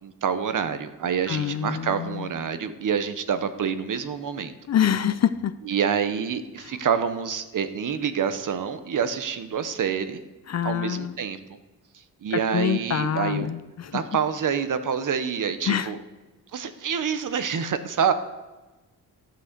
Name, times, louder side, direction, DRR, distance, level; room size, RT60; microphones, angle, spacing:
voice 1, 0.0-4.5 5.6-10.2 10.6-11.4 12.2-13.5 13.9-16.0 16.5-18.1, right 7 dB, 55° right, 10 dB, 0.9 m, -27 dB
voice 2, 1.3-2.2 4.7-5.5 10.5-11.1 12.3-13.9 15.7-15.9, left 9 dB, 45° left, 13 dB, 0.5 m, -25 dB
12.5 x 6.1 x 6.6 m, 1.1 s
wide cardioid pair, 140°, 38 cm